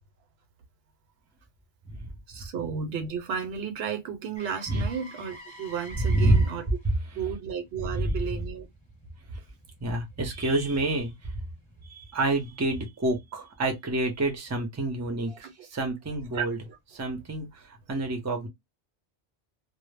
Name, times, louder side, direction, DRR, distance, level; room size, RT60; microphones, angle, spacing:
voice 1, 2.3-6.7 7.1-8.7 15.3-15.5 16.3-16.8 17.0-17.2, right 7 dB, 80° right, 0.8 m, -33 dB
Motor vehicle (road), 4.4-12.3 16.6-16.7, right 1 dB, 10° left, 1.0 m, -50 dB
voice 2, 6.0-6.4 7.9-8.1 9.3-9.4 9.8-11.4 11.8-16.6 16.9-18.5, right 2 dB, 20° right, 0.5 m, -28 dB
2.0 x 2.0 x 3.2 m
omnidirectional pair, 1.1 m